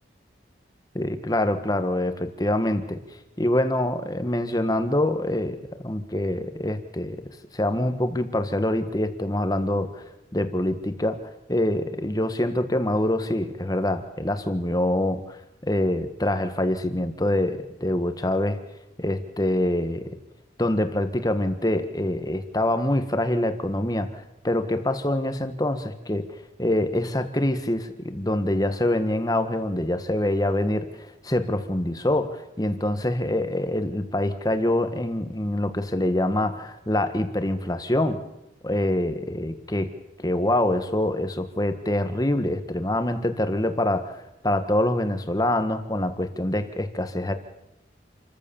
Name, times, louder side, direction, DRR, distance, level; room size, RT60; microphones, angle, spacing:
voice 1, 0.9-3.0 3.4-7.2 7.5-10.0 10.3-11.2 11.5-18.6 19.0-20.2 20.6-26.3 26.6-38.2 38.6-39.9 40.2-47.3, left 1 dB, 20° left, 9 dB, 1.5 m, -25 dB
28.5 x 14.5 x 7.1 m, 0.87 s
head